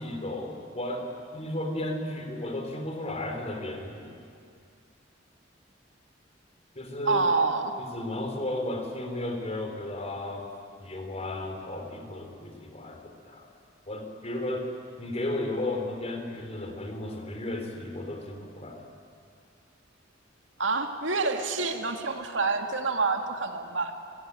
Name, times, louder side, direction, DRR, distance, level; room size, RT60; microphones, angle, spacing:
voice 1, 0.0-4.1 6.7-7.2 7.8-10.5 10.8-13.5 13.9-14.7 15.0-18.8, left 1 dB, 35° left, 4 dB, 3.9 m, -34 dB
voice 2, 7.0-7.8 20.6-23.9, right 4 dB, 80° right, 5 dB, 2.2 m, -27 dB
29.0 x 19.0 x 9.9 m, 2.4 s
head